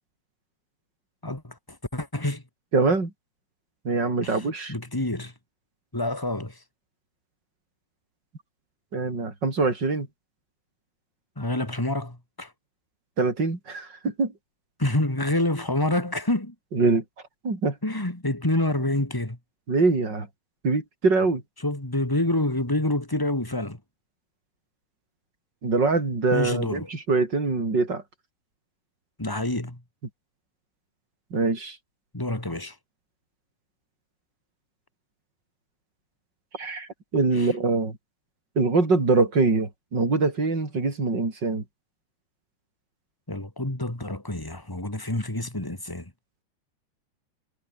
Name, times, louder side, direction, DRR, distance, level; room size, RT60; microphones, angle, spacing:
voice 1, 1.2-1.5 1.9-2.4 4.2-4.4 4.7-5.3 5.9-6.6 11.4-12.5 14.8-16.5 17.8-19.4 21.6-23.8 26.3-26.9 29.2-29.8 32.1-32.7 37.4-37.5 43.3-46.1, left 1 dB, 5° left, 2.3 m, -27 dB
voice 2, 2.7-3.1 3.8-4.8 8.9-10.1 13.2-14.3 16.7-17.0 17.4-17.8 19.7-20.3 20.6-21.4 25.6-28.0 31.3-31.8 36.5-38.0 38.6-41.6, right 3 dB, 25° right, 5.5 m, -24 dB
omnidirectional pair, 5.0 m